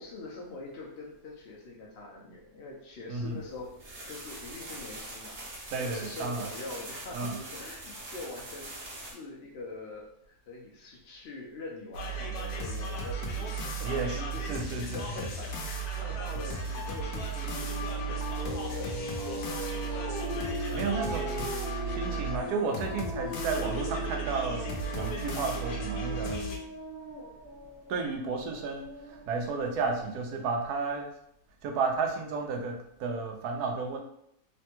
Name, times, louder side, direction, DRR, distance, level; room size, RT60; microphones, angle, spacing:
voice 1, 0.0-3.7 4.1-8.7 9.0-15.7 15.9-20.8, left 2 dB, 65° left, -2 dB, 0.6 m, -44 dB
voice 2, 3.1-3.4 5.7-6.5 7.1-7.4 13.8-15.3 20.7-26.5 27.9-31.1 31.6-34.0, right 4 dB, 85° right, 2 dB, 1.1 m, -33 dB
sound 1, 3.4-9.1, right 1 dB, 50° right, 1.2 m, -43 dB
sound 2, 11.9-26.6, right 3 dB, 85° left, 1.1 m, -35 dB
sound 3, 17.4-29.9, equal, 45° left, 0.9 m, -39 dB
3.2 x 2.2 x 2.8 m, 0.73 s
omnidirectional pair, 1.6 m